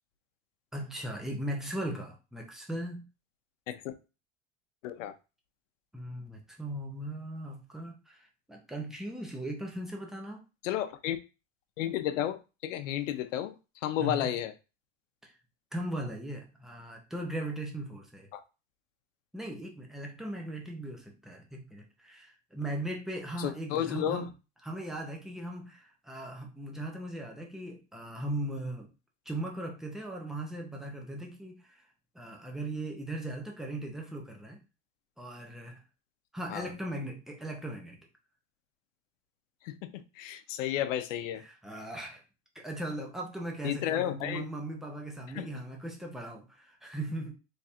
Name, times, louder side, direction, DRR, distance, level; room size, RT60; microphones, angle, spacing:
voice 1, 0.7-3.1 5.9-8.2 8.5-10.4 14.0-14.4 15.2-15.3 15.7-18.3 19.3-24.3 24.6-28.9 29.3-31.6 32.2-34.6 35.2-35.8 36.3-38.0 41.4-42.2 42.6-47.3, right 1 dB, ahead, 1 dB, 0.4 m, -38 dB
voice 2, 4.8-5.1 10.6-11.2 11.8-13.5 13.8-14.5 18.3-18.4 23.4-24.2 36.5-36.7 39.6-41.4 43.6-44.4 45.3-45.5, left 11 dB, 90° left, 11 dB, 0.7 m, -32 dB
3.4 x 2.4 x 4.2 m, 0.30 s
supercardioid pair, 150°, 37 cm